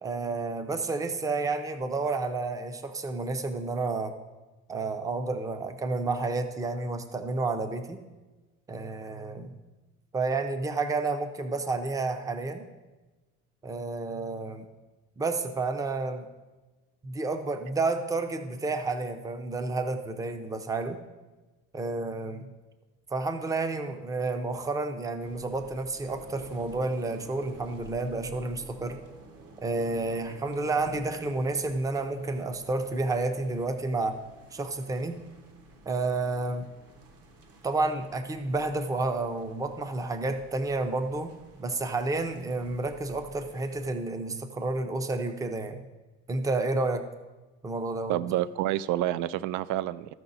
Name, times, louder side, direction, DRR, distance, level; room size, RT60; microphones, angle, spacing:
voice 1, 0.0-4.1 4.7-8.0 8.7-9.5 10.1-12.7 13.6-14.7 15.2-16.3 17.0-21.0 21.7-22.5 23.1-29.0 29.6-34.2 34.5-35.2 35.9-36.7 37.6-41.3 41.6-45.8 46.3-47.0 47.6-48.2, right 3 dB, 10° right, 7 dB, 0.6 m, -30 dB
sound 1, 25.2-43.9, right 2 dB, 50° right, 1.2 m, -52 dB
voice 2, 48.1-50.1, right 13 dB, 65° right, 17 dB, 0.5 m, -28 dB
14.0 x 5.7 x 4.1 m, 1.2 s
cardioid pair, 145°, 32 cm